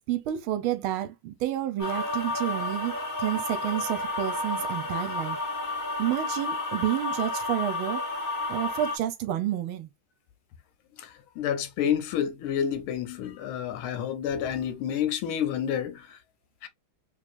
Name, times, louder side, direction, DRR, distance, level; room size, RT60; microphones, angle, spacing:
voice 1, 0.0-5.4 6.0-8.0 8.5-9.9, right 12 dB, 80° right, 1.5 m, -30 dB
sound 1, 1.8-9.0, left 2 dB, 25° left, 0.4 m, -31 dB
voice 2, 11.0-16.2 16.6-16.7, left 9 dB, 85° left, 1.6 m, -29 dB
3.5 x 3.4 x 2.5 m
omnidirectional pair, 2.3 m